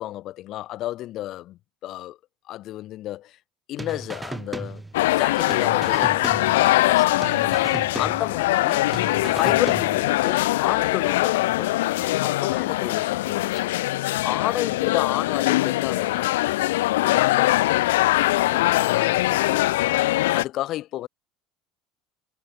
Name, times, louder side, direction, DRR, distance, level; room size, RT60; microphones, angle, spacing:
voice 1, 0.0-2.2 2.5-3.4 3.7-4.8 5.1-8.9 9.3-13.7 14.2-16.5 17.0-17.6 18.1-20.0 20.3-21.1, left 14 dB, 60° left, 6.6 m, -32 dB
sound 1, 3.8-5.2 5.5-6.9 7.2-8.6 8.9-10.3, right 2 dB, 15° right, 3.8 m, -36 dB
sound 2, 4.9-20.4, left 17 dB, 85° left, 0.8 m, -22 dB
supercardioid pair, 85°, 0 cm